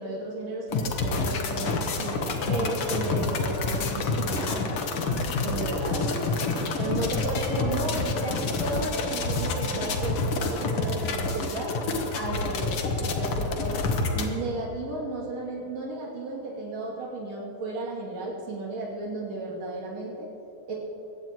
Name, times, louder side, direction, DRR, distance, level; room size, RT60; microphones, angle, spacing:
voice 1, 0.0-2.2 2.5-4.7 5.4-6.3 6.7-11.7 12.1-13.9 14.2-20.3 20.7-20.8, right 2 dB, 60° right, -4 dB, 3.7 m, -33 dB
sound 1, 0.7-14.3, left 3 dB, 60° left, 1.8 m, -28 dB
sound 2, 3.9-19.3, right 2 dB, 30° left, 4.2 m, -46 dB
21.5 x 16.0 x 3.0 m, 2.7 s
omnidirectional pair, 3.4 m